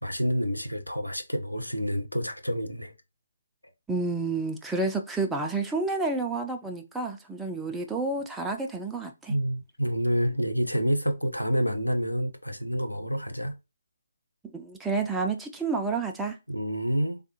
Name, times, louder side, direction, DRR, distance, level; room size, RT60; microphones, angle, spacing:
voice 1, 0.0-2.9 9.3-13.6 16.5-17.2, equal, 90° left, 0.6 m, -28 dB
voice 2, 3.9-9.3 14.4-16.4, right 3 dB, 5° right, 0.3 m, -30 dB
3.4 x 2.3 x 2.7 m
figure-of-eight pair, 145°, 0 cm